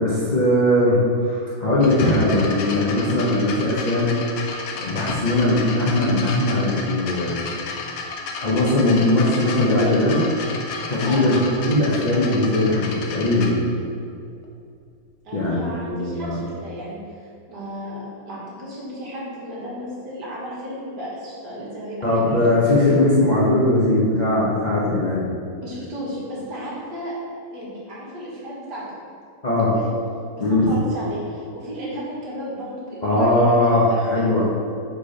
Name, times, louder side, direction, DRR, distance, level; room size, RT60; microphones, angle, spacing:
voice 1, 0.0-4.1 4.8-7.3 8.4-10.2 10.9-11.4 11.7-13.5 15.3-16.4 22.0-25.2 29.4-29.7 30.4-30.8 33.0-34.5, left 1 dB, 40° left, -8 dB, 0.6 m, -19 dB
sound 1, 1.8-13.5 14.4-14.5, left 4 dB, 85° left, 1.6 m, -32 dB
voice 2, 15.2-22.5 25.6-27.2 27.5-28.8 29.7-30.0 30.3-34.0, equal, 55° right, -6 dB, 1.9 m, -34 dB
5.0 x 4.7 x 5.0 m, 2.4 s
omnidirectional pair, 2.3 m